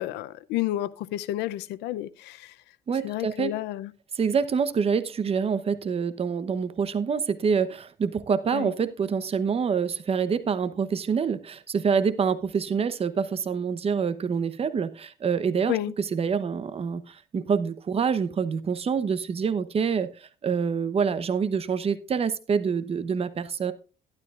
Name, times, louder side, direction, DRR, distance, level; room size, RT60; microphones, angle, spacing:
voice 1, 0.0-2.5 3.0-3.9 8.5-8.7 15.7-15.9, left 14 dB, 90° left, 0.6 m, -30 dB
voice 2, 2.9-3.5 4.1-23.7, right 6 dB, 35° right, 0.9 m, -26 dB
12.5 x 11.5 x 2.5 m
cardioid pair, 110°, 17 cm